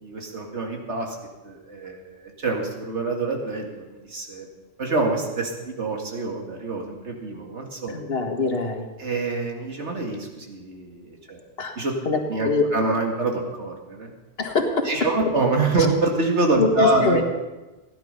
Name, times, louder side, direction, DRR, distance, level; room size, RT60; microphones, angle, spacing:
voice 1, 0.0-1.2 1.4-4.5 4.8-7.9 9.0-11.4 11.8-11.9 12.3-14.1 14.9-17.2, right 3 dB, 70° right, 1 dB, 2.4 m, -26 dB
voice 2, 7.9-8.9 11.6-11.8 12.1-12.6 14.4-14.9 16.6-17.2, left 4 dB, 55° left, 3 dB, 1.8 m, -23 dB
16.5 x 10.5 x 5.5 m, 1.1 s
omnidirectional pair, 1.2 m